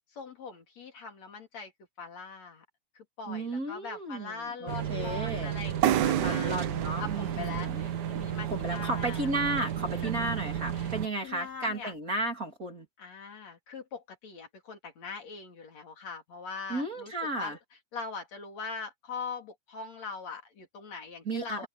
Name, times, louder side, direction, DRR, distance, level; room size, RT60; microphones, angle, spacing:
voice 1, 0.1-1.7 2.0-2.7 3.0-6.7 7.0-9.3 10.0-10.1 10.7-10.9 11.2-11.9 13.0-17.6 17.9-21.7, left 5 dB, 60° left, 4.2 m, -41 dB
voice 2, 3.3-5.5 6.2-7.8 8.5-12.9 16.7-17.6 21.2-21.7, right 2 dB, 30° right, 2.9 m, -34 dB
sound 1, 4.7-11.1, right 9 dB, 65° right, 1.0 m, -33 dB
sound 2, 5.8-9.5, right 11 dB, 80° right, 2.5 m, -31 dB
omnidirectional pair, 3.4 m